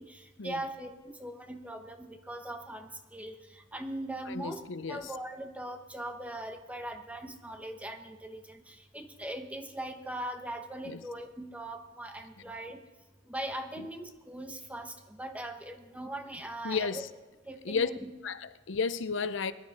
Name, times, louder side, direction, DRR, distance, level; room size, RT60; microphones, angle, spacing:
voice 1, 0.0-4.6 4.9-12.8 13.3-17.0 17.5-18.1, right 1 dB, 5° right, 1.1 m, -40 dB
voice 2, 4.3-5.1 10.9-11.0 13.8-13.9 16.6-17.1 17.6-17.9 18.2-19.5, left 5 dB, 75° left, 0.6 m, -33 dB
22.0 x 10.5 x 4.2 m
head